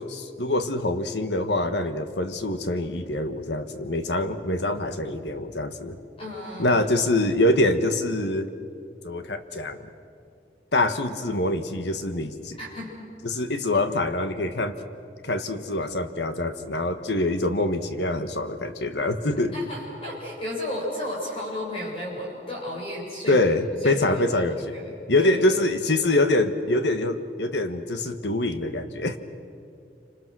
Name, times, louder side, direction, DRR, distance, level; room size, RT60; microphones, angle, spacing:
voice 1, 0.0-6.0 6.6-8.5 9.0-9.8 10.7-12.6 13.2-14.7 15.2-19.5 23.3-24.8 25.1-29.2, left 2 dB, 80° left, 8 dB, 1.5 m, -25 dB
voice 2, 6.2-6.8 12.6-13.0 19.5-23.4 23.8-25.4, left 1 dB, 30° left, -3 dB, 7.2 m, -34 dB
28.0 x 26.0 x 6.3 m, 2.5 s
head